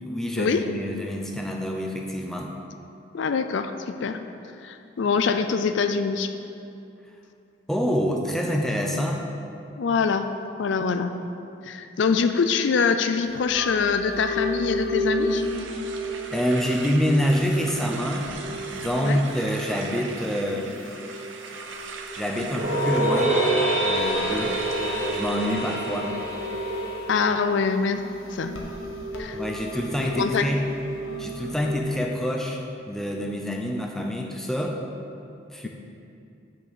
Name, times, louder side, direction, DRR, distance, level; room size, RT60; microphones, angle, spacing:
voice 1, 0.0-2.5 7.7-9.2 16.3-18.3 18.6-20.7 22.1-23.3 23.8-24.6 25.1-26.1 29.3-30.6 31.2-32.6 32.9-34.8 35.5-35.7, equal, ahead, 0 dB, 0.6 m, -26 dB
voice 2, 3.1-4.2 4.6-6.3 9.8-10.3 10.6-11.1 11.6-15.4 19.0-19.2 27.1-28.0 28.3-28.5 29.2-29.4 30.0-30.5, left 5 dB, 65° left, 9 dB, 0.4 m, -24 dB
sound 1, 13.2-31.8, left 1 dB, 90° left, 1.1 m, -34 dB
sound 2, 15.2-26.1, right 5 dB, 70° right, 0.7 m, -40 dB
sound 3, 22.6-27.8, right 1 dB, 35° right, 1.3 m, -26 dB
6.4 x 5.8 x 7.0 m, 2.7 s
head